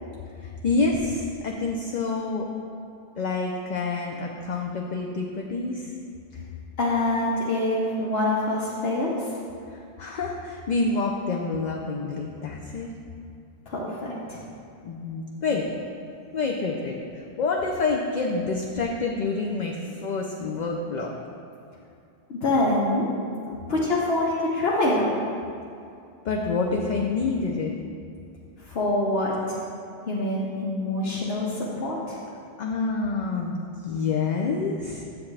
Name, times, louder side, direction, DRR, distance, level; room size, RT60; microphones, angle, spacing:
voice 1, 0.4-2.5 3.2-5.9 9.7-12.9 14.8-15.7 16.3-21.1 23.5-23.6 26.2-27.7 32.6-33.6 33.8-35.0, left 3 dB, 55° left, 0 dB, 0.6 m, -27 dB
voice 2, 6.8-9.3 13.7-14.4 22.3-23.1 23.7-25.1 28.7-29.6 30.0-32.2, left 2 dB, 75° left, -5 dB, 1.1 m, -25 dB
7.9 x 7.1 x 3.3 m, 2.5 s
omnidirectional pair, 1.1 m